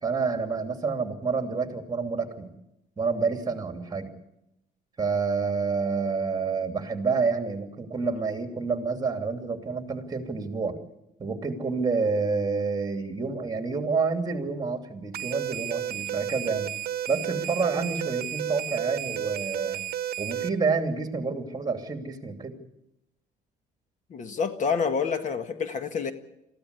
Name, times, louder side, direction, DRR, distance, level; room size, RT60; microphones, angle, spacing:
voice 1, 0.0-2.5 3.0-4.1 5.0-10.8 11.2-16.7 17.1-19.8 20.2-22.5, right 4 dB, 25° right, 5 dB, 2.8 m, -28 dB
sound 1, 15.1-20.5, right 11 dB, 65° right, 0.9 m, -32 dB
voice 2, 24.1-26.1, left 5 dB, 45° left, 8 dB, 1.7 m, -28 dB
22.0 x 15.0 x 8.4 m, 0.86 s
cardioid pair, 110°, 17 cm